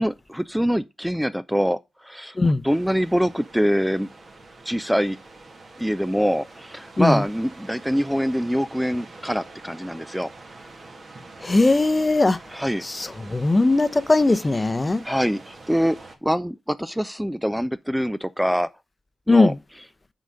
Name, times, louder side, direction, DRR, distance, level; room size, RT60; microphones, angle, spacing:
voice 1, 0.0-2.4 2.6-4.1 4.7-5.2 5.8-10.3 12.5-12.8 15.0-18.7 19.3-19.5, equal, 5° right, 0.4 m, -24 dB
sound 1, 2.7-16.2, right 3 dB, 55° right, 2.3 m, -45 dB
voice 2, 11.4-12.4 12.8-15.0 19.3-19.6, left 2 dB, 30° left, 0.7 m, -19 dB
7.7 x 4.1 x 6.4 m
cardioid pair, 50°, 0 cm